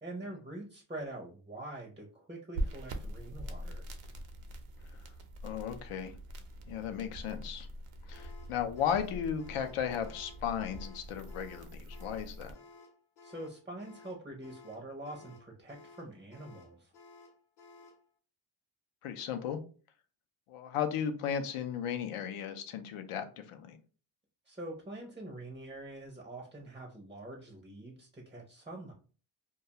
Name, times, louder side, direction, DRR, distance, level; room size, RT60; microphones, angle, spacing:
voice 1, 0.0-3.8 13.2-16.9 24.5-28.9, right 1 dB, 15° right, 0 dB, 0.4 m, -45 dB
sound 1, 2.5-12.5, right 1 dB, 90° right, 0.6 m, -43 dB
voice 2, 5.4-6.1 6.7-7.7 8.1-12.5 19.0-19.6 20.5-23.8, left 8 dB, 85° left, 8 dB, 0.6 m, -35 dB
sound 2, 8.1-18.0, left 3 dB, 50° left, 0.8 m, -56 dB
2.3 x 2.2 x 2.7 m, 0.38 s
cardioid pair, 120°, 50 cm